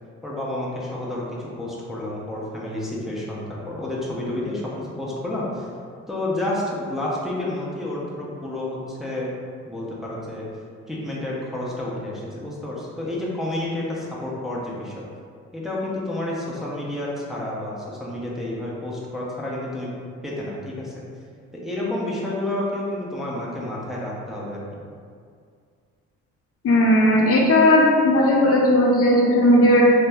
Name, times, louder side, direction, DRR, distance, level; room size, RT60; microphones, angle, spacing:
voice 1, 0.2-5.7 6.1-9.3 9.7-10.5 10.9-15.0 15.5-19.9 20.2-20.9 21.5-24.6, left 1 dB, ahead, -6 dB, 0.5 m, -30 dB
voice 2, 26.6-29.9, left 1 dB, 50° left, -2 dB, 0.5 m, -16 dB
2.7 x 2.1 x 3.3 m, 2.2 s
cardioid pair, 90°, 30 cm